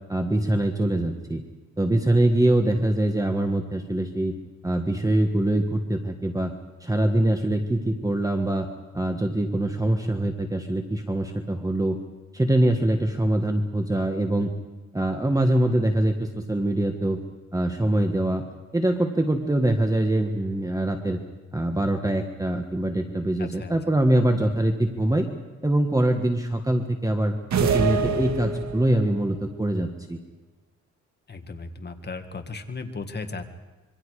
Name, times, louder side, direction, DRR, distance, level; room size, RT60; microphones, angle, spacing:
voice 1, 0.1-1.4 1.8-4.3 4.6-6.5 6.8-8.7 8.9-12.0 12.3-14.5 14.9-17.2 17.5-18.4 18.7-21.2 21.5-25.3 25.6-30.2, right 1 dB, 10° right, 4 dB, 1.5 m, -23 dB
voice 2, 23.4-23.7 31.3-33.5, left 4 dB, 35° left, 6 dB, 1.9 m, -36 dB
sound 1, 27.5-29.1, right 5 dB, 70° right, 2.0 m, -25 dB
26.5 x 23.5 x 4.9 m, 1.2 s
cardioid pair, 120°, 29 cm